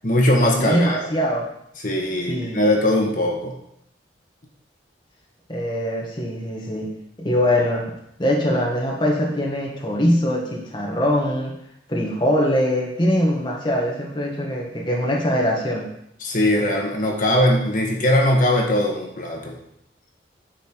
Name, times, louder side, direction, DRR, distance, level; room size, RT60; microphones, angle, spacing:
voice 1, 0.0-1.1 1.8-3.5 16.2-19.5, left 1 dB, 45° left, 0 dB, 1.7 m, -20 dB
voice 2, 0.6-1.5 2.3-2.8 5.5-6.9 7.2-7.9 8.2-11.5 11.9-15.9, equal, 25° left, -3 dB, 1.6 m, -22 dB
9.4 x 7.2 x 4.6 m, 0.76 s
head